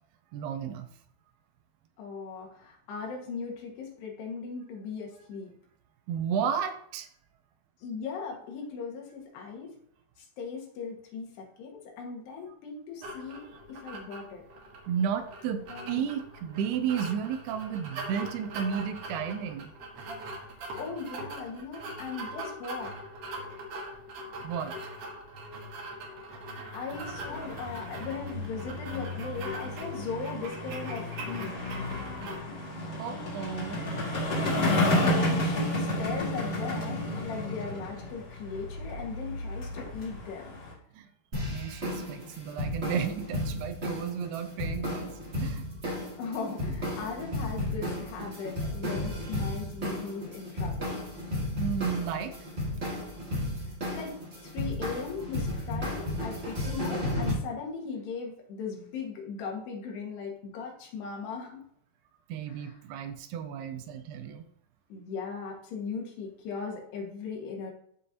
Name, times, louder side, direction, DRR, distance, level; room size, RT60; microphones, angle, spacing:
voice 1, 0.3-0.9 6.1-7.1 14.9-19.7 24.4-24.8 33.0-33.9 40.9-41.1 41.3-45.1 45.4-45.7 51.6-52.4 62.3-64.5, right 7 dB, 80° right, 9 dB, 2.5 m, -33 dB
voice 2, 2.0-5.5 7.8-9.7 10.4-14.4 15.7-16.1 20.8-22.9 26.7-31.6 35.0-40.5 46.2-51.0 53.9-54.2 54.4-61.6 62.6-62.7 64.9-67.7, left 5 dB, 80° left, 1 dB, 3.7 m, -38 dB
sound 1, 13.0-32.4, right 1 dB, 65° right, 1.7 m, -42 dB
sound 2, 26.9-40.7, left 1 dB, 25° left, 2.2 m, -32 dB
sound 3, 41.3-57.3, left 1 dB, 30° right, 1.2 m, -33 dB
13.0 x 5.3 x 2.8 m, 0.67 s
omnidirectional pair, 4.8 m